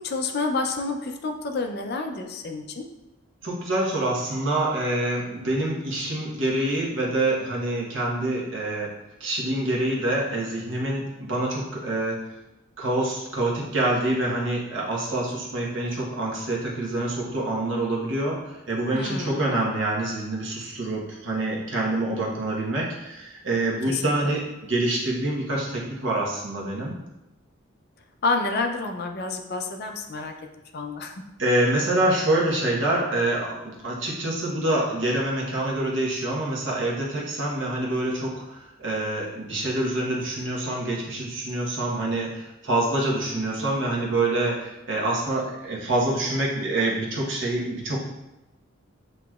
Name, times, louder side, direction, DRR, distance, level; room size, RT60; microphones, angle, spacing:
voice 1, 0.0-2.9 18.9-19.5 23.9-24.3 28.2-30.3 30.7-31.1, left 3 dB, 50° left, 5 dB, 0.4 m, -29 dB
voice 2, 3.4-8.9 9.2-12.2 12.8-27.0 31.4-33.6 33.8-48.0, right 1 dB, 60° right, -3 dB, 1.1 m, -26 dB
7.6 x 3.0 x 2.3 m, 0.98 s
head